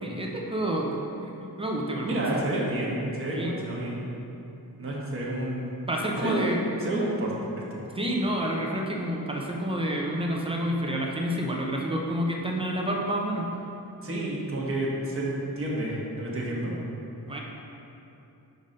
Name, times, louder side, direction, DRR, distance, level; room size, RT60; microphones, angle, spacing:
voice 1, 0.0-2.2 3.3-3.5 5.9-6.6 8.0-13.5 16.6-16.8 17.3-17.4, equal, 15° right, -1 dB, 0.6 m, -29 dB
voice 2, 2.0-4.0 4.8-5.7 6.2-6.5 6.8-7.3 7.7-7.8 14.0-16.8, right 1 dB, 35° right, -5 dB, 1.1 m, -30 dB
5.6 x 3.9 x 5.2 m, 2.9 s
wide cardioid pair, 160°, 39 cm